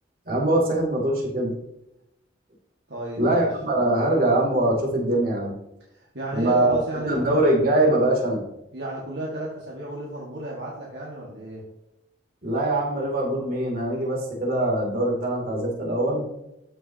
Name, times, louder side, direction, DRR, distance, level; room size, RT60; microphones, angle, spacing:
voice 1, 0.3-1.5 3.2-5.5 6.3-8.4 12.4-16.2, right 1 dB, 50° right, -2 dB, 2.7 m, -23 dB
voice 2, 2.9-3.5 5.9-7.5 8.7-11.6, right 1 dB, 70° right, -3 dB, 1.7 m, -33 dB
13.5 x 6.3 x 2.8 m, 0.86 s
head